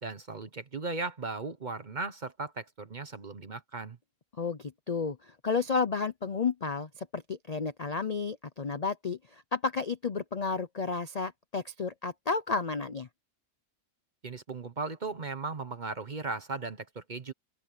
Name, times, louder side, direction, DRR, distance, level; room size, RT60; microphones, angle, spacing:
voice 1, 0.0-4.0 14.2-17.3, right 3 dB, 35° right, 0.9 m, -37 dB
voice 2, 4.4-13.1, left 4 dB, 45° left, 0.5 m, -32 dB
open air
omnidirectional pair, 1.6 m